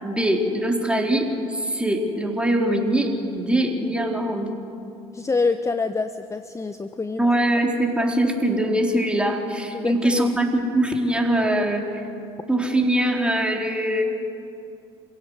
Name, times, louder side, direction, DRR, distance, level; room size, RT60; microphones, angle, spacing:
voice 1, 0.0-4.5 7.2-12.0 12.5-14.0, right 1 dB, 5° right, 1 dB, 4.2 m, -22 dB
voice 2, 5.1-7.2 9.7-10.3, left 4 dB, 20° left, 9 dB, 1.0 m, -26 dB
27.0 x 16.5 x 8.2 m, 2.7 s
hypercardioid pair, 65°, 15 cm